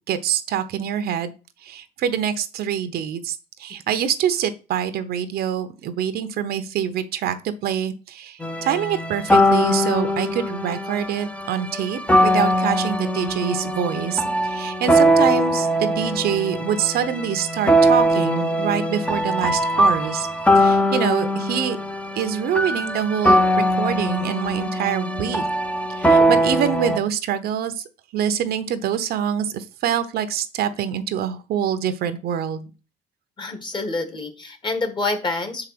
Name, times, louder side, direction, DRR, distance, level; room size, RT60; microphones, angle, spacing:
voice 1, 0.1-1.3 1.6-20.3 20.5-21.8 22.1-23.4 23.7-25.5 26.0-27.8 28.1-32.7, right 9 dB, 65° right, 11 dB, 0.9 m, -25 dB
sound 1, 8.4-27.0, equal, 5° left, 0.8 m, -21 dB
voice 2, 33.4-35.7, left 3 dB, 30° left, 8 dB, 1.7 m, -27 dB
6.4 x 4.9 x 6.0 m, 0.33 s
cardioid pair, 110°, 17 cm